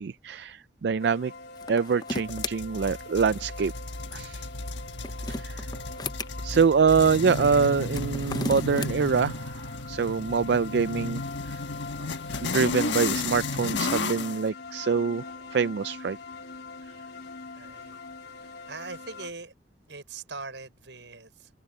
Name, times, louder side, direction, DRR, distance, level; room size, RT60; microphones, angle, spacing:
voice 1, 0.0-1.3 1.7-3.7 4.1-4.5 5.3-5.7 6.4-11.2 11.5-11.6 12.4-15.3 15.5-16.2, right 5 dB, 65° right, 0.4 m, -25 dB
sound 1, 1.0-19.3, left 3 dB, 65° left, 3.6 m, -43 dB
sound 2, 1.6-2.6 4.8-6.3 7.8-8.9, left 2 dB, 20° left, 0.7 m, -34 dB
sound 3, 2.3-14.4, left 3 dB, 85° left, 1.4 m, -33 dB
voice 2, 17.5-18.0 18.3-19.5 19.9-21.5, right 3 dB, 85° right, 5.7 m, -42 dB
head